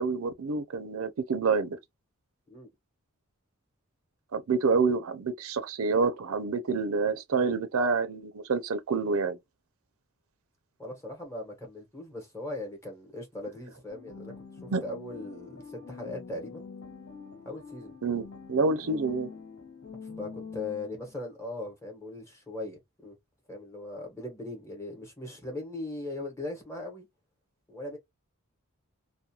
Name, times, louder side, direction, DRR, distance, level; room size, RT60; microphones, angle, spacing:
voice 1, 0.0-1.8 4.3-9.4 14.7-14.8 18.0-19.3, right 4 dB, 75° right, 0.5 m, -28 dB
voice 2, 10.8-16.6 17.4-18.0 20.2-23.2 23.5-27.1 27.7-28.0, left 2 dB, 15° left, 1.0 m, -39 dB
sound 1, 13.9-21.2, left 5 dB, 70° left, 1.5 m, -45 dB
2.3 x 2.2 x 2.8 m
head